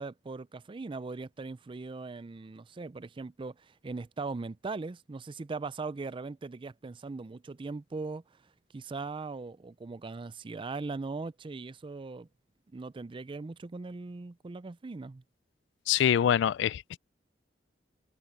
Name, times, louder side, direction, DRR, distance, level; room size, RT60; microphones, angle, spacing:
voice 1, 0.0-8.4 8.7-12.3 12.7-15.2, right 3 dB, 30° right, 0.4 m, -39 dB
voice 2, 15.9-17.0, left 9 dB, 70° left, 0.3 m, -25 dB
head